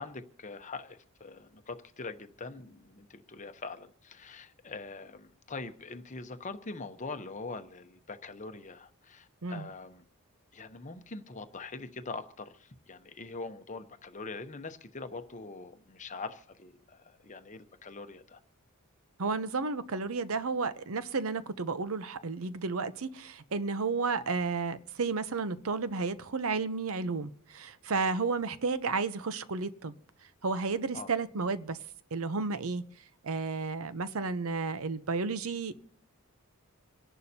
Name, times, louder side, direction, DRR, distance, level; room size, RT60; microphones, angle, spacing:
voice 1, 0.0-10.0 10.5-18.4 30.9-31.1, left 3 dB, 35° left, 0.8 m, -43 dB
voice 2, 19.2-29.9 30.4-31.8 32.1-32.8 33.2-35.7, right 4 dB, 65° right, 0.7 m, -32 dB
27.0 x 11.0 x 2.8 m
head